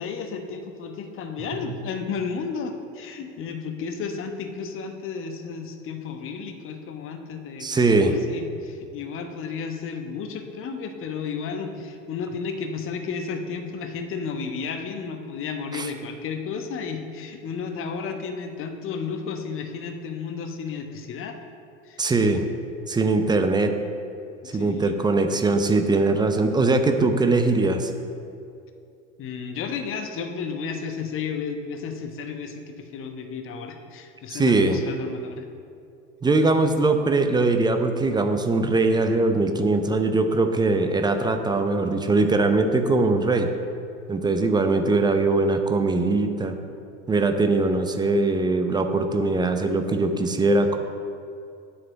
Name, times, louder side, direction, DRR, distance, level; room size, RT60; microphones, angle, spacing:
voice 1, 0.0-21.4 21.8-22.0 24.4-24.9 29.2-35.5, left 5 dB, 35° left, 5 dB, 1.1 m, -33 dB
voice 2, 7.6-8.1 15.7-15.9 22.0-22.4 22.9-23.7 24.5-27.9 34.3-34.8 36.2-43.5 44.1-46.6 47.1-50.8, right 3 dB, 10° right, 6 dB, 0.7 m, -21 dB
7.7 x 6.1 x 7.8 m, 2.5 s
figure-of-eight pair, 80°, 38 cm